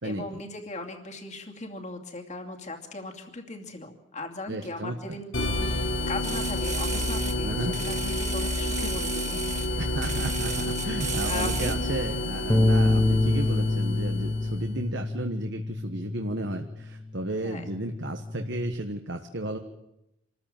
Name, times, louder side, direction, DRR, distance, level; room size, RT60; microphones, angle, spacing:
voice 1, 0.0-9.9 11.2-11.7 17.4-17.7, left 2 dB, 40° left, 3 dB, 2.7 m, -38 dB
voice 2, 4.5-5.0 7.4-7.7 9.8-19.6, right 1 dB, 65° right, 5 dB, 1.4 m, -33 dB
sound 1, 5.3-14.7, left 1 dB, 75° left, 3.9 m, -30 dB
sound 2, 6.2-7.4 7.7-9.7 10.0-11.8, right 8 dB, 40° right, 1.9 m, -35 dB
Bass guitar, 12.5-17.0 17.4-18.7, left 2 dB, 5° left, 0.9 m, -27 dB
26.5 x 14.0 x 9.0 m, 0.89 s
head